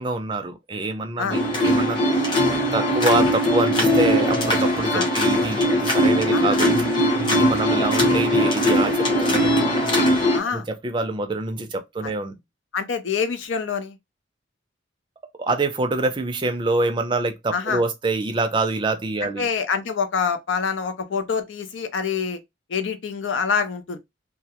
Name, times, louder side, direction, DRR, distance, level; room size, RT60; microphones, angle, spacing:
voice 1, 0.0-2.0 2.7-6.7 7.3-9.6 10.5-12.3 15.4-19.5, right 2 dB, 25° right, 0.4 m, -25 dB
sound 1, 1.3-10.4, equal, 25° left, 0.7 m, -20 dB
voice 2, 6.3-6.6 10.3-10.7 12.0-12.1 12.7-14.0 17.5-17.8 19.2-22.4 22.7-24.0, left 6 dB, 80° left, 0.5 m, -26 dB
2.3 x 2.1 x 2.8 m
head